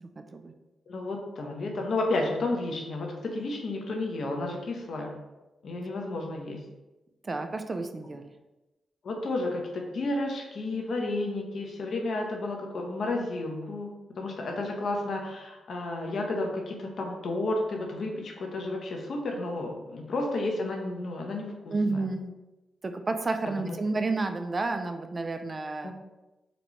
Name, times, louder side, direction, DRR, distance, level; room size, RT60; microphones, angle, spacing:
voice 1, 0.0-0.5 7.2-8.3 21.7-22.3 22.8-25.9, right 3 dB, 35° right, 7 dB, 0.3 m, -31 dB
voice 2, 0.9-5.1 5.6-6.6 9.0-22.0 23.6-23.7 25.8-25.9, left 2 dB, 65° left, 1 dB, 0.7 m, -32 dB
4.0 x 2.3 x 3.0 m, 1.0 s
cardioid pair, 65°, 0 cm